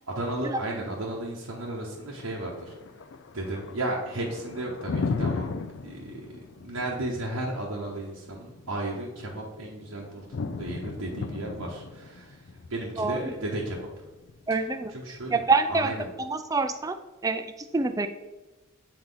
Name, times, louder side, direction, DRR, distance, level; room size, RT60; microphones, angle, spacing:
voice 1, 0.1-2.8 3.3-5.5 5.8-10.3 10.6-12.4 12.7-13.9 14.5-16.1, right 1 dB, 80° right, -3 dB, 1.0 m, -34 dB
Thunder, 1.5-15.5, left 4 dB, 55° left, 0.4 m, -37 dB
voice 2, 14.5-14.9 15.3-15.9 16.2-16.9 17.2-17.4 17.7-18.1, right 4 dB, 15° right, 10 dB, 0.3 m, -25 dB
7.8 x 4.3 x 3.9 m, 1.1 s
head